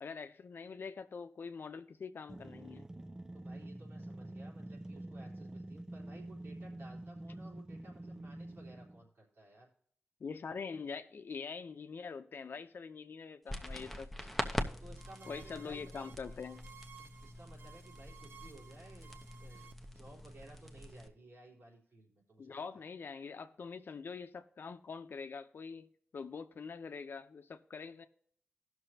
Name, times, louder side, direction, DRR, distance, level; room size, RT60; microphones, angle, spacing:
voice 1, 0.0-2.9 10.2-14.1 15.3-16.7 22.4-28.1, left 5 dB, 65° left, 0.7 m, -44 dB
sound 1, 2.3-9.0, right 1 dB, 15° right, 0.4 m, -47 dB
voice 2, 3.3-9.7 14.8-16.1 17.0-19.1 19.4-19.6 19.9-22.6, right 2 dB, 90° right, 3.5 m, -56 dB
sound 2, 13.5-21.1, equal, ahead, 0.8 m, -43 dB
sound 3, 15.0-20.9, right 7 dB, 75° right, 0.6 m, -57 dB
17.5 x 6.2 x 2.8 m
wide cardioid pair, 135°, 4 cm